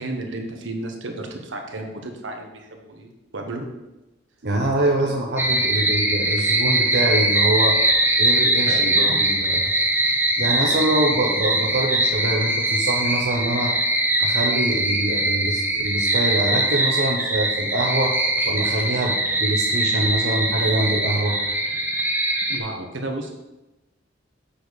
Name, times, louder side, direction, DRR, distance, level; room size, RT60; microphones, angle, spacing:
voice 1, 0.0-3.7 4.8-5.1 8.7-9.2 22.5-23.3, right 2 dB, 75° right, 3 dB, 1.2 m, -32 dB
voice 2, 4.4-7.8 8.2-8.8 9.2-9.6 10.4-13.7 14.2-18.1 18.5-21.4, right 1 dB, 60° right, -1 dB, 0.9 m, -24 dB
sound 1, 5.4-22.6, right 1 dB, 10° right, 0.9 m, -22 dB
7.6 x 4.2 x 6.5 m, 1.0 s
head